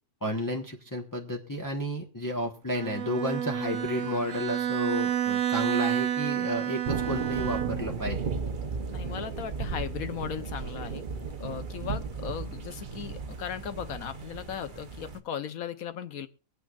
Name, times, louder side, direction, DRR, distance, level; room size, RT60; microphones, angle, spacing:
voice 1, 0.2-8.3, equal, 15° left, 1 dB, 1.1 m, -32 dB
Bowed string instrument, 2.8-8.0, right 10 dB, 65° right, 1.3 m, -30 dB
sound 1, 6.8-15.2, right 5 dB, 40° right, 0.9 m, -35 dB
voice 2, 8.9-11.0 11.4-16.3, left 8 dB, 80° left, 11 dB, 1.4 m, -37 dB
23.5 x 9.0 x 2.4 m, 0.36 s
omnidirectional pair, 1.5 m